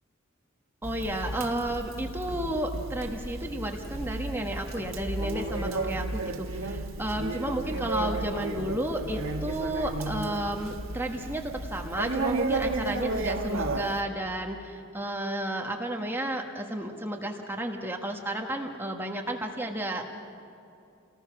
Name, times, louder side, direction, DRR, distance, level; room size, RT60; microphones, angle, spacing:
voice 1, 0.8-6.5 7.0-20.2, right 1 dB, 10° right, 2 dB, 1.4 m, -32 dB
Conversation, 0.8-14.0, right 2 dB, 65° right, 1.6 m, -33 dB
28.5 x 19.5 x 6.1 m, 2.7 s
head